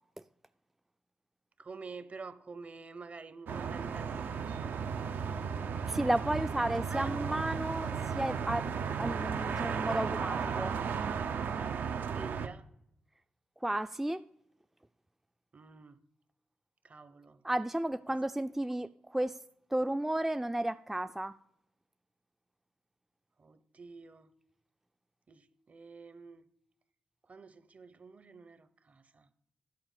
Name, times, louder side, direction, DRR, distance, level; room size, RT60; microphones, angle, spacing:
voice 1, 1.6-4.9 6.4-6.5 6.9-7.1 11.5-12.7 15.5-16.0 16.8-17.4 18.1-18.2 23.4-24.3 25.3-26.5 27.2-29.3, right 4 dB, 45° right, 1.0 m, -48 dB
sound 1, 3.5-12.5, right 6 dB, 75° right, 0.7 m, -35 dB
voice 2, 5.9-8.7 9.0-10.7 13.6-14.2 17.4-19.4 19.7-21.3, right 1 dB, 10° right, 0.4 m, -33 dB
10.5 x 4.9 x 7.6 m
cardioid pair, 55°, 3 cm